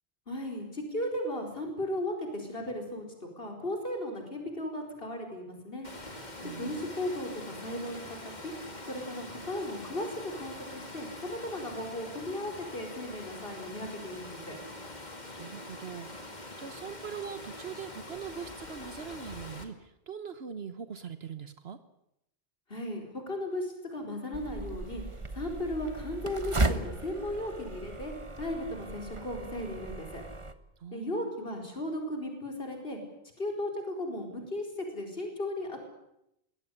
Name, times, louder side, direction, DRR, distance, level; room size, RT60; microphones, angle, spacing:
voice 1, 0.3-3.0 3.4-5.9 6.4-8.5 8.9-14.6 22.7-25.0 25.3-28.1 28.4-30.2 30.9-33.0 33.4-35.8, left 1 dB, 65° left, 2 dB, 4.9 m, -36 dB
Water, 5.8-19.6, left 2 dB, 45° left, 2.5 m, -44 dB
voice 2, 6.4-6.9 15.4-21.8 30.8-31.3, right 7 dB, 70° right, 11 dB, 1.3 m, -42 dB
sound 1, 24.3-30.5, right 2 dB, 30° right, 1.3 m, -35 dB
21.5 x 17.0 x 10.0 m, 0.82 s
omnidirectional pair, 1.1 m